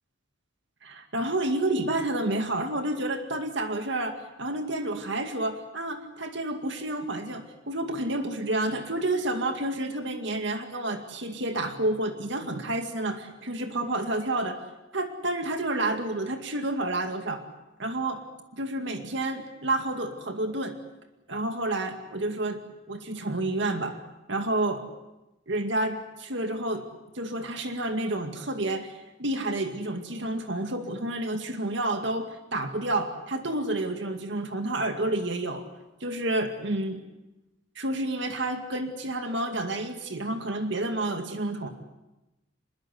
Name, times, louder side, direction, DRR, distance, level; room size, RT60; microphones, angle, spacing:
voice 1, 0.8-14.6 14.9-17.4 17.8-18.2 18.5-20.8 21.3-22.6 22.9-24.0 24.3-24.8 25.5-26.8 27.1-35.7 36.0-37.0 37.8-41.7, right 2 dB, 65° right, 6 dB, 2.2 m, -30 dB
24.5 x 21.5 x 8.3 m, 1.0 s
head